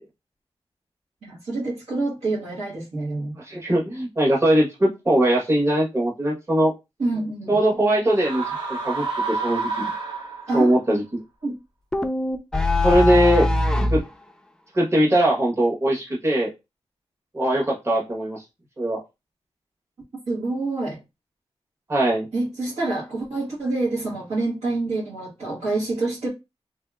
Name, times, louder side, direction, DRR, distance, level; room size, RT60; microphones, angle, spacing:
voice 1, 1.2-3.4 7.0-7.6 10.5-10.7 11.4-11.5 20.3-21.0 22.3-26.3, right 2 dB, 75° right, 1.4 m, -27 dB
voice 2, 3.5-6.7 7.5-8.4 8.8-9.9 10.5-11.0 12.8-13.5 13.9-14.0 14.7-16.5 17.3-18.4 18.8-19.0 21.9-22.3, right 1 dB, 25° right, 1.2 m, -20 dB
sound 1, 8.1-10.7, right 4 dB, 45° right, 1.1 m, -29 dB
sound 2, 11.9-14.1, left 1 dB, 5° left, 0.4 m, -21 dB
3.1 x 2.7 x 2.3 m
cardioid pair, 70°, 11 cm